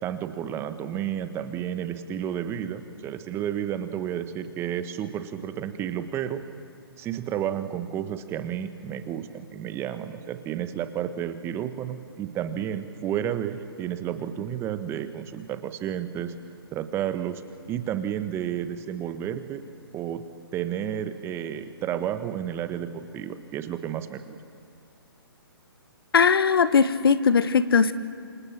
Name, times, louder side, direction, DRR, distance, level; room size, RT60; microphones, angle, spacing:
voice 1, 0.0-6.4 7.0-16.3 16.7-17.4 17.7-19.6 19.9-20.2 20.5-24.4, right 10 dB, 20° right, 10 dB, 1.3 m, -31 dB
voice 2, 26.1-27.9, left 6 dB, 65° left, 14 dB, 1.2 m, -19 dB
28.5 x 27.0 x 7.5 m, 2.4 s
figure-of-eight pair, 135°, 13 cm